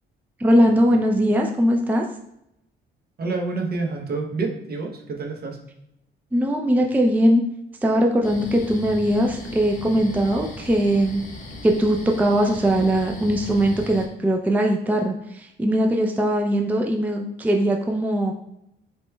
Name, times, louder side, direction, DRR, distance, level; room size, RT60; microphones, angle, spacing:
voice 1, 0.4-2.0 6.3-7.4 7.8-11.2 11.6-18.3, equal, 10° right, 2 dB, 0.4 m, -20 dB
voice 2, 3.2-5.6, right 3 dB, 50° right, 2 dB, 0.9 m, -28 dB
sound 1, 8.2-14.1, left 1 dB, 40° left, 1.2 m, -37 dB
7.5 x 3.0 x 2.2 m, 0.81 s
cardioid pair, 90°, 20 cm